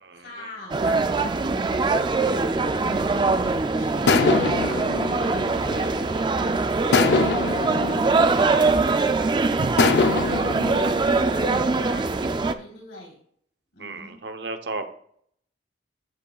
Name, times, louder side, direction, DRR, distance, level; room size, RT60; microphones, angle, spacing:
voice 1, 0.1-8.8 9.1-10.8 11.0-13.2 13.7-14.2, left 1 dB, 90° left, -2 dB, 3.7 m, -44 dB
sound 1, 0.7-12.5, right 3 dB, 25° right, 0.3 m, -23 dB
sound 2, 2.8-3.5 4.1-6.3 6.9-9.2 9.8-12.0, left 4 dB, 65° left, 0.5 m, -25 dB
voice 2, 5.7-6.1 9.6-9.7 13.8-14.9, right 3 dB, 65° right, 7 dB, 0.9 m, -33 dB
14.0 x 5.3 x 2.4 m, 0.63 s
head